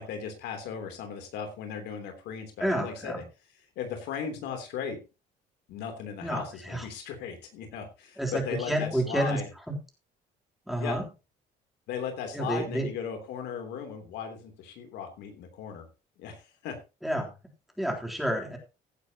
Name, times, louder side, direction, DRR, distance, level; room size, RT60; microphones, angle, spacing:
voice 1, 0.0-3.2 3.7-5.0 5.7-9.5 10.8-11.0 11.9-15.9 16.2-16.8, left 7 dB, 85° left, 5 dB, 3.3 m, -37 dB
voice 2, 2.6-3.2 6.2-6.9 8.2-9.4 9.7-9.8 10.7-11.0 12.3-12.9 17.0-17.3 17.8-18.6, right 1 dB, ahead, 0 dB, 3.5 m, -29 dB
16.0 x 10.5 x 3.0 m, 0.30 s
cardioid pair, 110°, 17 cm